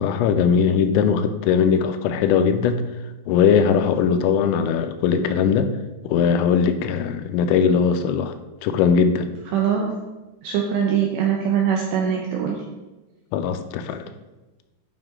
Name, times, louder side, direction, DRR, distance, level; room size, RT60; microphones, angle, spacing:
voice 1, 0.0-2.8 3.3-5.7 6.0-8.3 8.6-9.3 13.3-14.0, left 6 dB, 90° left, 8 dB, 3.3 m, -20 dB
voice 2, 9.5-9.9 10.4-12.6, right 8 dB, 80° right, 0 dB, 2.5 m, -22 dB
10.0 x 5.7 x 3.7 m, 1.1 s
omnidirectional pair, 5.8 m